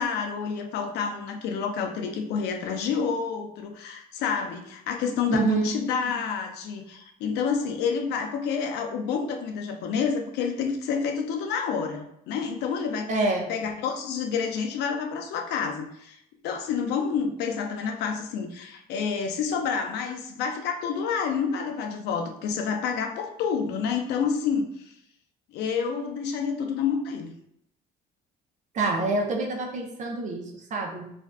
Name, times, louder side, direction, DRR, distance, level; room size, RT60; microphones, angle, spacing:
voice 1, 0.0-13.1 13.5-16.2 16.4-24.7 25.5-27.3, left 6 dB, 85° left, 4 dB, 0.4 m, -28 dB
voice 2, 5.3-5.7 13.1-13.5 28.7-31.1, right 2 dB, 45° right, 1 dB, 0.6 m, -26 dB
2.5 x 2.2 x 2.2 m, 0.75 s
cardioid pair, 110°, 17 cm